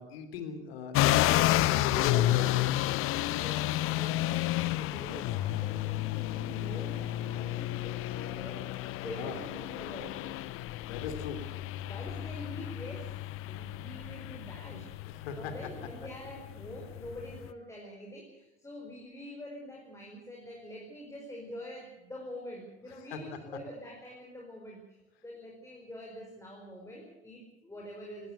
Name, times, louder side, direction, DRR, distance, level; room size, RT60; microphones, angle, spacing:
voice 1, 0.0-2.9 9.0-9.4 10.8-11.4 15.1-15.5 23.1-23.2, left 6 dB, 65° left, 8 dB, 3.2 m, -39 dB
sound 1, 0.9-17.5, left 15 dB, 40° left, 0.8 m, -31 dB
voice 2, 3.2-8.7 9.0-10.4 11.8-13.2 13.5-15.0 15.4-28.3, equal, 10° left, 0 dB, 4.8 m, -45 dB
19.0 x 18.0 x 8.1 m, 0.92 s
figure-of-eight pair, 75°, 32 cm